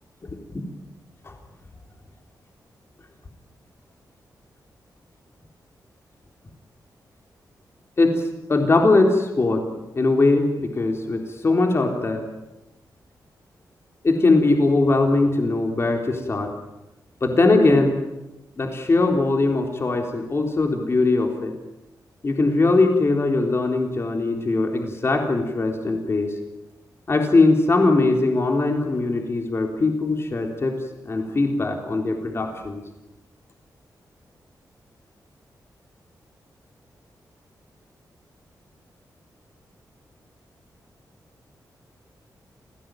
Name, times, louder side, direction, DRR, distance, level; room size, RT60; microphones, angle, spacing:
voice 1, 8.5-9.6 10.0-12.2 14.0-16.5 17.2-17.9 18.6-21.5 22.2-26.3 27.1-30.7 31.1-32.8, left 3 dB, 35° left, 3 dB, 3.7 m, -20 dB
28.5 x 17.0 x 9.3 m, 0.96 s
wide cardioid pair, 125°, 7 cm